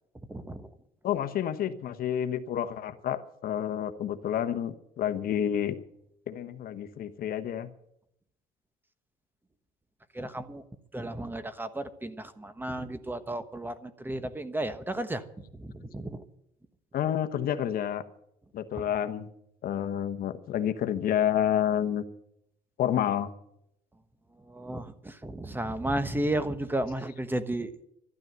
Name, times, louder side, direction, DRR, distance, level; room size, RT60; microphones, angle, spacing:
voice 1, 0.3-0.7 10.1-10.6 10.9-15.2 15.5-16.2 24.4-27.8, right 1 dB, 10° right, 11 dB, 1.2 m, -33 dB
voice 2, 1.0-5.8 6.3-7.7 16.9-18.0 18.5-19.3 19.6-22.0 22.8-23.3, left 10 dB, 60° left, 11 dB, 1.1 m, -29 dB
12.0 x 12.0 x 7.9 m, 0.77 s
cardioid pair, 110°, 17 cm